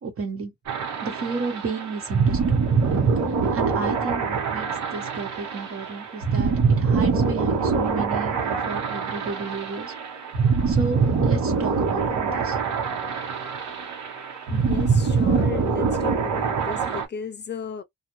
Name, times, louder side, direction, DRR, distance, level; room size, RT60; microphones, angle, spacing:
voice 1, 0.0-0.5 1.0-2.6 3.5-9.9 10.7-12.6, right 4 dB, 45° right, 1.2 m, -32 dB
sound 1, 0.7-17.1, right 5 dB, 65° right, 1.1 m, -24 dB
voice 2, 14.5-17.8, left 7 dB, 35° left, 0.5 m, -35 dB
2.5 x 2.4 x 3.0 m
cardioid pair, 90°, 30 cm